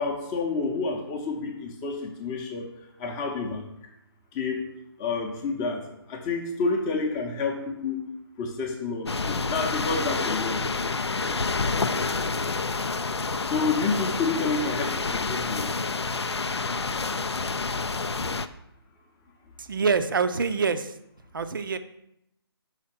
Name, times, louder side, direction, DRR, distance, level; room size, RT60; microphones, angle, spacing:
voice 1, 0.0-2.7 3.0-3.6 4.3-4.7 5.0-5.8 6.1-8.0 8.4-10.6 13.5-15.8, left 4 dB, 15° left, 2 dB, 0.7 m, -29 dB
sound 1, 9.1-18.5, left 4 dB, 85° left, 0.4 m, -28 dB
voice 2, 19.6-21.0 21.3-21.8, right 5 dB, 55° right, 10 dB, 0.5 m, -25 dB
5.7 x 4.3 x 5.7 m, 0.80 s
figure-of-eight pair, 145°, 13 cm